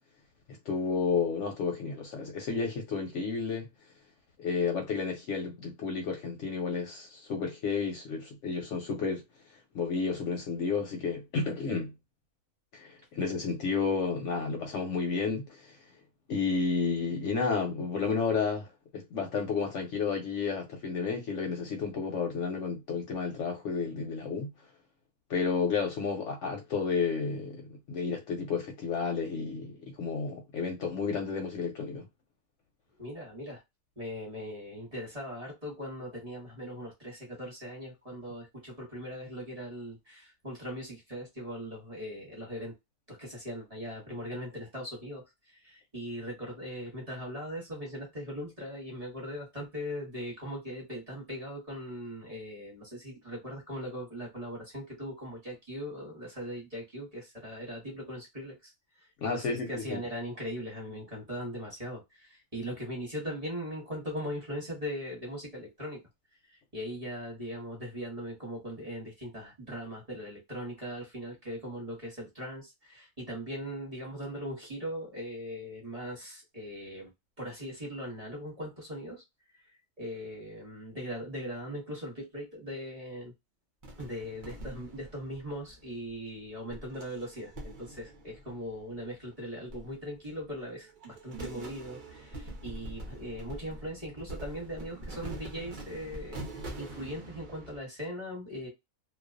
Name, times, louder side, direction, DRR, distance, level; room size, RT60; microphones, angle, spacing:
voice 1, 0.7-3.7 4.4-9.2 9.7-11.9 12.7-15.8 16.3-24.5 25.3-32.1 59.2-60.0, left 5 dB, 70° left, 0.8 m, -31 dB
voice 2, 33.0-33.6 34.0-42.7 43.1-66.0 66.5-77.1 77.4-79.2 79.5-83.3 84.0-98.7, equal, 30° right, 0.9 m, -40 dB
sound 1, 83.8-86.1 86.7-89.2 89.7-90.5 90.8-97.8, right 2 dB, 50° right, 0.6 m, -44 dB
2.3 x 2.2 x 2.4 m
omnidirectional pair, 1.6 m